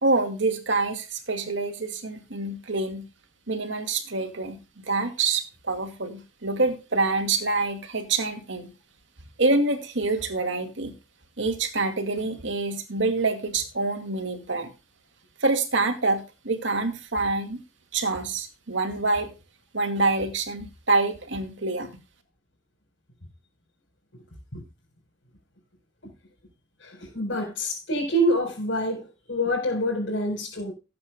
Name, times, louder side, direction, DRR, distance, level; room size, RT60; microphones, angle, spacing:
voice 1, 0.0-3.0 3.5-8.7 9.4-10.9 11.4-14.7 15.4-17.6 17.9-19.3 19.7-21.9, right 3 dB, 75° right, 2.3 m, -26 dB
voice 2, 26.8-30.7, equal, 80° left, 4.4 m, -26 dB
18.0 x 8.5 x 2.2 m
head